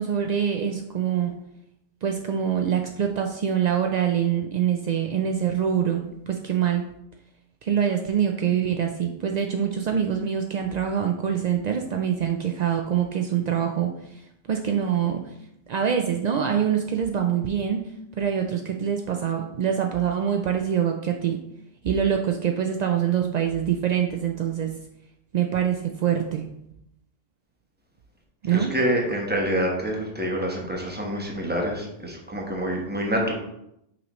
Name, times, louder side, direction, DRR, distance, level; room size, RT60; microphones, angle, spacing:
voice 1, 0.0-1.4 2.0-6.8 7.6-14.2 14.5-15.2 15.7-21.4 21.8-24.7 25.3-26.5 28.4-28.7, right 8 dB, 65° right, 3 dB, 0.4 m, -25 dB
voice 2, 28.5-33.3, equal, 10° right, -1 dB, 1.0 m, -26 dB
5.7 x 5.4 x 3.1 m, 0.80 s
omnidirectional pair, 1.2 m